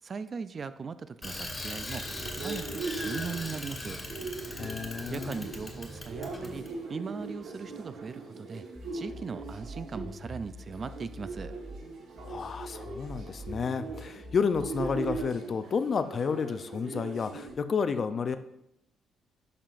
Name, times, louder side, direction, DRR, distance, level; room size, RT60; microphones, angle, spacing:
voice 1, 0.0-4.0 5.1-8.7 8.9-11.6, right 5 dB, 40° right, 13 dB, 0.4 m, -39 dB
Bicycle, 1.2-6.7, left 1 dB, 25° left, 1.5 m, -39 dB
sound 1, 2.0-17.5, right 4 dB, 75° right, 1.4 m, -41 dB
voice 2, 4.6-5.5 12.3-18.4, left 5 dB, 45° left, 10 dB, 0.5 m, -31 dB
sound 2, 8.8-11.8 12.2-15.2, equal, 5° left, 0.8 m, -45 dB
10.0 x 5.6 x 2.5 m, 0.81 s
cardioid pair, 90°, 0 cm